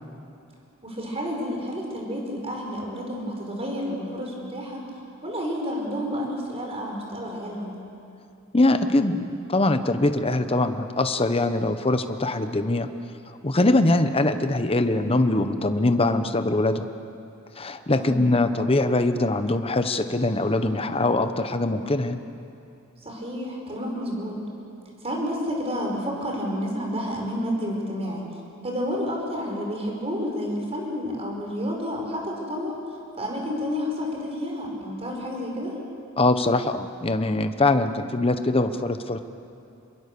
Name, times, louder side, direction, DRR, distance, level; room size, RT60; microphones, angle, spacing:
voice 1, 0.8-4.8 5.2-7.7 18.0-18.2 23.0-24.4 25.0-28.2 28.6-32.8 33.2-35.7, equal, 30° right, 0 dB, 5.2 m, -30 dB
voice 2, 8.5-12.9 13.4-16.9 17.6-22.2 36.2-39.2, left 2 dB, 25° left, 9 dB, 1.0 m, -22 dB
27.0 x 22.5 x 6.9 m, 2.7 s
head